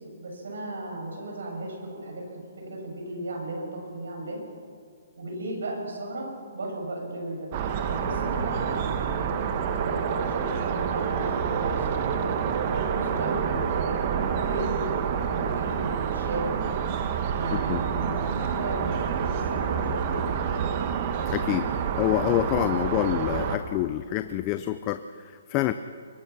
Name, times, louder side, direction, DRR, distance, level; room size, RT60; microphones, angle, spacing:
voice 1, 0.2-2.3 2.6-4.4 5.2-7.5 7.8-9.1 9.7-11.9 12.2-13.9 14.5-16.6 17.3-20.3, right 2 dB, 85° right, 0 dB, 7.7 m, -35 dB
sound 1, 7.5-23.6, right 7 dB, 35° right, 1.5 m, -28 dB
voice 2, 21.3-21.7 22.0-25.7, left 14 dB, 25° left, 11 dB, 0.5 m, -27 dB
23.0 x 20.5 x 6.1 m, 2.2 s
hypercardioid pair, 165°, 0 cm